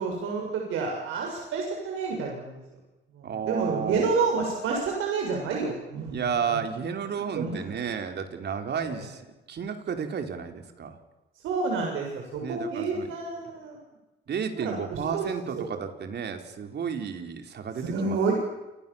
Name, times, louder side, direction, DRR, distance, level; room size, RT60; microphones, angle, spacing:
voice 1, 0.0-2.6 3.1-6.2 6.5-6.6 7.1-7.5 8.8-9.1 11.4-13.8 14.6-15.2 15.5-15.6 17.8-18.3, right 4 dB, 85° right, 1 dB, 7.2 m, -29 dB
voice 2, 3.2-4.1 6.1-9.2 9.5-11.0 12.4-13.1 14.3-18.3, right 6 dB, 60° right, 6 dB, 4.5 m, -32 dB
29.5 x 27.5 x 7.4 m, 1.0 s
cardioid pair, 90°, 20 cm